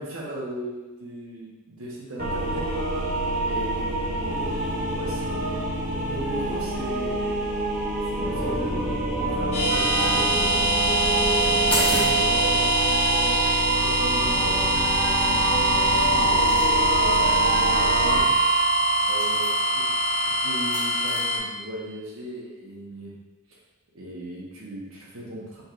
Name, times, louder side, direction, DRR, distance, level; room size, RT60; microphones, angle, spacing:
voice 1, 0.0-2.7 3.1-7.4 8.1-10.4 11.2-18.2 19.0-23.2 23.5-23.6 23.9-25.6, right 1 dB, 65° right, -4 dB, 1.0 m, -38 dB
sound 1, 2.2-18.2, right 1 dB, 35° right, 0.8 m, -27 dB
sound 2, 9.5-21.4, right 1 dB, 80° left, 1.2 m, -22 dB
sound 3, 11.7-21.2, left 1 dB, 5° left, 0.8 m, -37 dB
5.1 x 3.2 x 2.5 m, 1.2 s
head